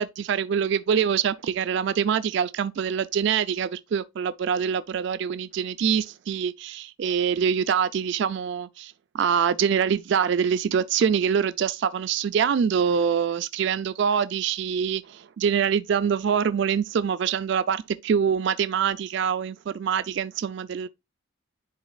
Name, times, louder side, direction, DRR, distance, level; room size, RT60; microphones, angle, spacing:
voice 1, 0.0-20.9, right 7 dB, 60° right, 0.3 m, -25 dB
10.5 x 4.0 x 2.3 m
head